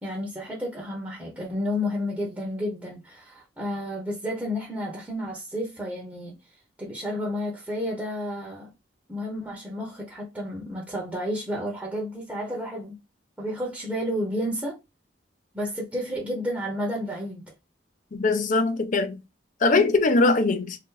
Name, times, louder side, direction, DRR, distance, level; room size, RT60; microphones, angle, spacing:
voice 1, 0.0-6.4 6.8-8.7 9.1-12.9 13.4-14.8 15.5-17.4, left 1 dB, 10° right, 0.8 m, -31 dB
voice 2, 18.1-19.2 19.6-20.8, left 3 dB, 45° left, 0.5 m, -21 dB
2.7 x 2.5 x 3.7 m
head